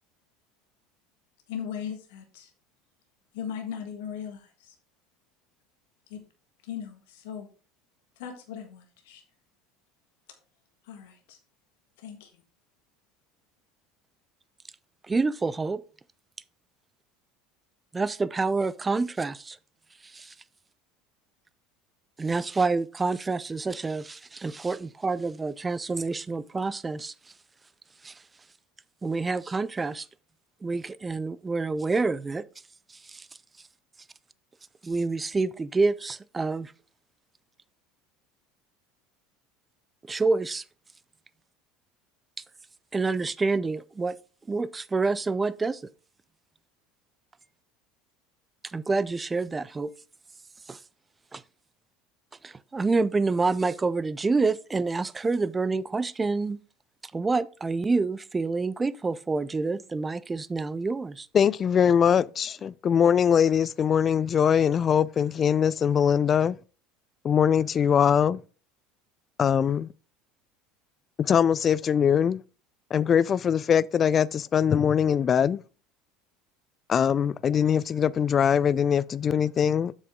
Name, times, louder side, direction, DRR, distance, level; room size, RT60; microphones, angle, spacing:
voice 1, 1.5-2.5 3.3-4.7 6.1-6.2 6.6-7.5 8.2-9.2 10.9-11.4 12.0-12.3, left 8 dB, 75° left, 1.5 m, -38 dB
voice 2, 15.0-15.8 17.9-19.6 20.1-20.3 22.2-27.1 28.0-28.1 29.0-30.1 30.6-32.4 33.0-33.3 34.8-36.7 40.1-40.6 42.9-44.2 44.5-45.8 48.7-49.9 50.7-50.8 51.3-51.4 52.4-56.6 57.1-61.3, right 3 dB, 20° right, 0.5 m, -27 dB
voice 3, 61.3-66.6 67.2-68.4 69.4-69.9 71.2-72.4 72.9-75.6 76.9-79.9, left 8 dB, 40° left, 0.4 m, -22 dB
7.6 x 6.4 x 3.7 m
hypercardioid pair, 75°, 0 cm